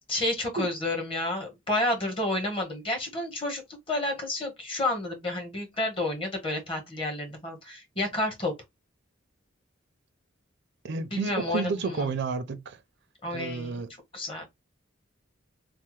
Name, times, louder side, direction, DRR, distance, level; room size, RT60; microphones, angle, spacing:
voice 1, 0.1-8.5 10.9-12.1 13.2-13.8 14.1-14.4, left 1 dB, 30° left, 1.1 m, -30 dB
voice 2, 10.8-12.8 13.3-13.9, right 4 dB, 60° right, 0.4 m, -31 dB
3.2 x 2.0 x 3.0 m
head